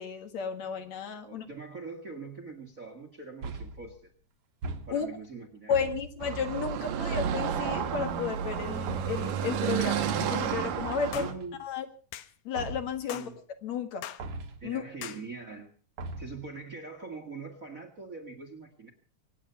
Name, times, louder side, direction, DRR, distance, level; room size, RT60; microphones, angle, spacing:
voice 1, 0.0-1.5 4.9-5.1 5.7-11.3 11.6-11.9 12.5-13.3 13.6-14.0 14.6-14.8, left 6 dB, 60° left, 7 dB, 2.7 m, -33 dB
voice 2, 1.2-4.1 4.9-5.9 11.1-11.6 13.1-13.3 14.6-15.7 16.2-18.9, right 4 dB, 35° right, 5 dB, 1.6 m, -43 dB
sound 1, 3.4-4.0 4.6-5.3 5.7-6.3 7.1-7.6 8.9-9.4 10.9-11.7 12.6-13.1 14.2-14.7 16.0-16.5, right 2 dB, 55° right, 2.1 m, -40 dB
Car passing by / Traffic noise roadway noise, 6.2-11.3, right 8 dB, 90° right, 3.1 m, -31 dB
sound 2, 11.1-11.4 12.1-12.3 13.1-13.3 14.0-14.3 15.0-15.2, left 12 dB, 75° left, 2.4 m, -40 dB
25.5 x 9.6 x 5.6 m, 0.40 s
omnidirectional pair, 3.7 m